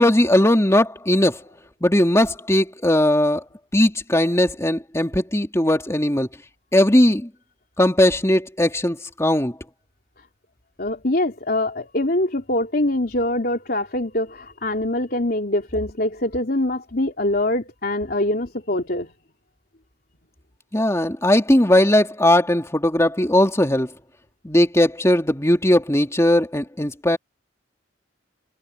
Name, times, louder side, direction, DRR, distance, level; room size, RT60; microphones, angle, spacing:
voice 1, 0.0-1.4 1.8-3.4 3.7-6.3 6.7-7.3 7.8-9.6 20.7-23.9 24.4-27.2, left 1 dB, 15° left, 2.7 m, -18 dB
voice 2, 10.8-19.1, left 1 dB, 55° left, 3.5 m, -24 dB
head